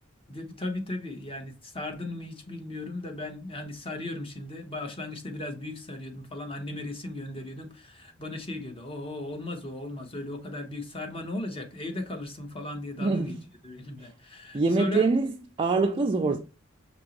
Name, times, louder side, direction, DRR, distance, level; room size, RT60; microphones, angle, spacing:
voice 1, 0.3-13.3 13.6-15.1, left 2 dB, 25° left, 0.9 m, -37 dB
voice 2, 13.0-13.4 14.0-14.1 14.5-16.4, right 3 dB, 25° right, 0.3 m, -25 dB
5.5 x 2.9 x 2.9 m
head